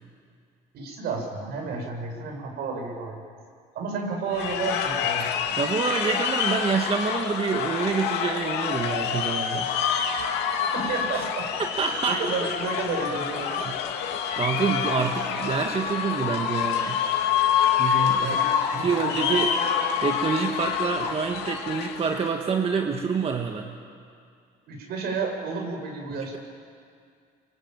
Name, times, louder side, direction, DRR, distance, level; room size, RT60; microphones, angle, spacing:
voice 1, 0.7-3.2 3.7-5.3 10.5-13.7 18.2-19.5 24.7-26.4, right 4 dB, 70° right, 2 dB, 6.4 m, -32 dB
sound 1, 4.3-22.3, left 8 dB, 90° left, 2.5 m, -27 dB
voice 2, 5.5-9.7 11.2-11.3 11.8-12.2 13.6-13.7 14.4-17.0 17.8-18.4 18.7-19.5 20.0-23.7, right 5 dB, 35° right, 3 dB, 1.9 m, -27 dB
27.5 x 23.5 x 9.2 m, 2.2 s
cardioid pair, 110°, 17 cm